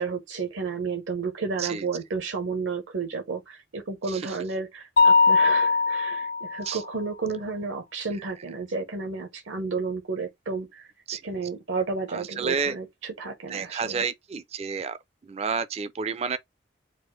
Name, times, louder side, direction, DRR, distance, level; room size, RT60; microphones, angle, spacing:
voice 1, 0.0-10.9 11.2-14.0, right 4 dB, 75° right, 0.9 m, -32 dB
voice 2, 4.1-4.4 6.6-6.8 8.2-8.3 11.1-11.2 12.1-12.8 13.5-15.0 15.2-16.4, right 5 dB, 30° right, 0.3 m, -30 dB
Mallet percussion, 5.0-6.8, left 4 dB, 50° left, 0.4 m, -20 dB
4.2 x 2.4 x 4.5 m
head